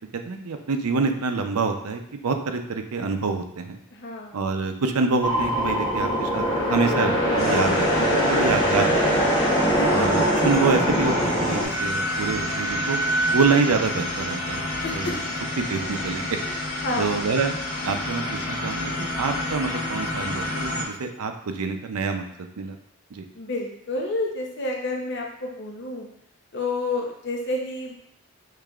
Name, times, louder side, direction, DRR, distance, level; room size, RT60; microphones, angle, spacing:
voice 1, 0.3-3.8 4.3-6.4 6.7-9.3 9.9-13.0 13.3-15.2 15.6-16.2 17.0-17.6 17.8-22.8 23.1-23.2, right 4 dB, 90° right, 6 dB, 0.5 m, -26 dB
voice 2, 3.9-4.4 9.7-10.1 14.8-15.1 16.4-16.6 16.8-17.3 23.3-26.1 26.5-27.9, left 2 dB, 55° left, 0 dB, 0.7 m, -29 dB
sound 1, 5.2-11.6, equal, 20° left, 0.8 m, -22 dB
sound 2, 7.4-20.8, left 1 dB, 90° left, 1.6 m, -30 dB
Wind instrument woodwind instrument, 11.7-15.2, right 2 dB, 15° right, 0.6 m, -29 dB
6.6 x 3.3 x 2.4 m, 0.74 s
head